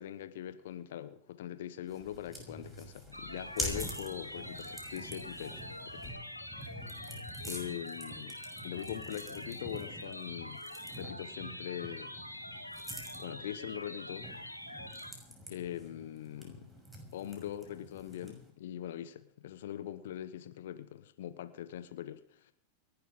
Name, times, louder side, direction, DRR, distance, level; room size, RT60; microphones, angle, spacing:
voice 1, 0.0-6.1 7.4-8.4 8.6-10.6 10.9-12.1 13.2-14.3 15.5-16.7 17.1-22.5, left 11 dB, 55° left, 1.2 m, -42 dB
sound 1, 1.9-18.5, equal, 5° right, 6.2 m, -46 dB
sound 2, 3.1-15.1, left 1 dB, 90° left, 1.8 m, -45 dB
28.5 x 12.0 x 3.8 m
figure-of-eight pair, 90°, 0 cm